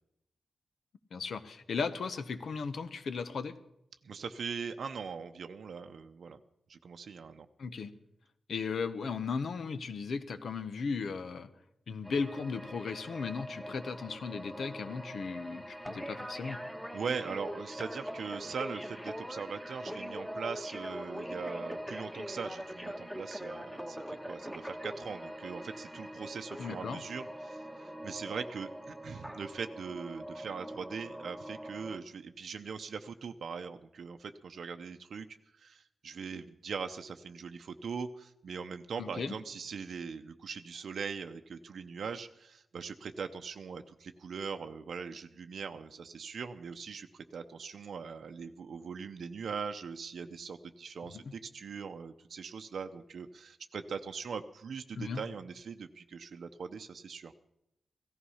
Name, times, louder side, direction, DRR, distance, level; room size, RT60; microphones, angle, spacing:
voice 1, 1.1-3.5 7.6-7.9 8.5-11.5 11.9-16.6 26.6-27.0 39.0-39.3 51.2-51.3 55.0-55.2, left 5 dB, 70° left, 11 dB, 1.0 m, -36 dB
voice 2, 4.0-6.4 6.7-7.5 16.9-35.3 35.5-57.3, right 5 dB, 70° right, 7 dB, 0.7 m, -41 dB
sound 1, 12.0-32.0, equal, 5° left, 1.4 m, -43 dB
16.5 x 14.5 x 5.6 m, 0.82 s
wide cardioid pair, 105°, 0 cm